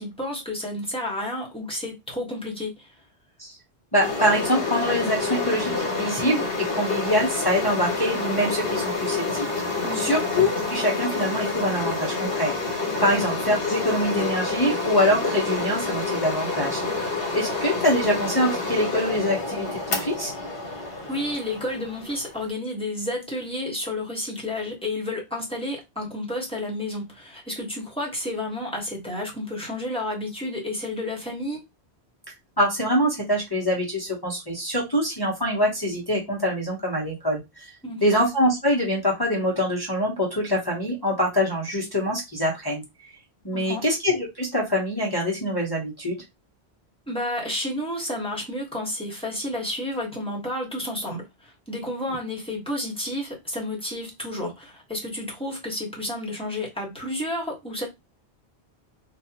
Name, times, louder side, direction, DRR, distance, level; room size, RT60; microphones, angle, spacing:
voice 1, 0.0-2.9 9.8-10.2 13.1-13.2 21.1-31.6 37.8-38.0 43.5-43.8 47.1-57.9, left 1 dB, 5° left, 1.2 m, -31 dB
voice 2, 3.9-6.4 6.7-9.5 9.9-12.5 13.0-20.3 32.6-37.7 38.0-42.8 43.4-46.2, equal, 20° left, 1.0 m, -24 dB
sound 1, 4.0-22.5, left 3 dB, 60° left, 1.3 m, -28 dB
3.6 x 2.5 x 2.8 m
omnidirectional pair, 1.1 m